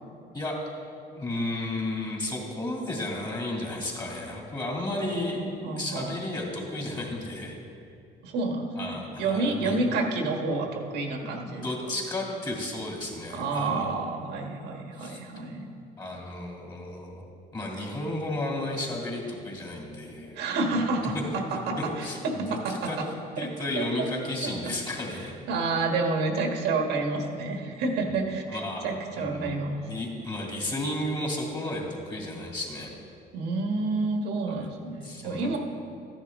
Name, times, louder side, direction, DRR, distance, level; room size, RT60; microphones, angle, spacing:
voice 1, 1.1-5.4 5.8-7.6 8.8-9.9 11.4-13.9 15.0-15.2 16.0-17.3 17.5-20.3 21.0-21.1 21.8-23.0 23.4-25.4 28.5-32.9 34.5-34.6 35.0-35.6, left 1 dB, 25° left, -2 dB, 2.6 m, -33 dB
voice 2, 5.4-6.1 8.2-11.6 13.3-15.7 20.3-21.9 22.2-23.1 23.4-23.5 23.8-24.1 24.4-24.7 25.5-29.9 33.3-35.6, right 3 dB, 85° right, 2 dB, 1.5 m, -29 dB
13.5 x 10.5 x 3.6 m, 2.5 s
cardioid pair, 110°, 17 cm